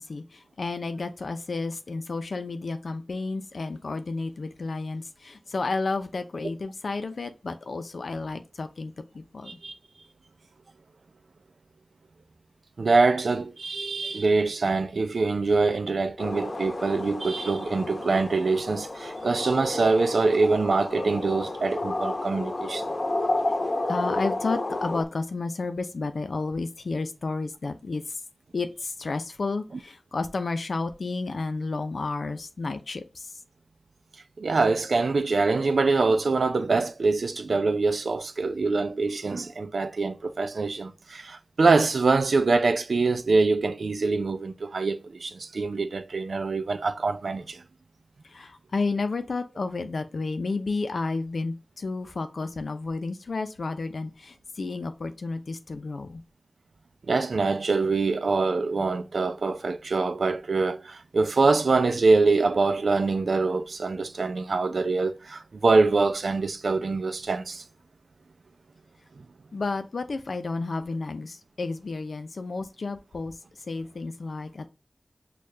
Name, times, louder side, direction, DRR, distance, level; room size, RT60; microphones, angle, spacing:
voice 1, 0.0-9.6 23.9-28.0 28.5-33.3 48.3-56.2 69.5-73.3 73.7-74.7, left 3 dB, 80° left, 0.6 m, -31 dB
voice 2, 12.8-22.9 34.4-47.6 57.1-67.6, right 3 dB, 85° right, 0.4 m, -24 dB
sound 1, 16.2-25.0, left 2 dB, 50° left, 0.8 m, -31 dB
6.5 x 2.4 x 2.7 m
wide cardioid pair, 55°, 0 cm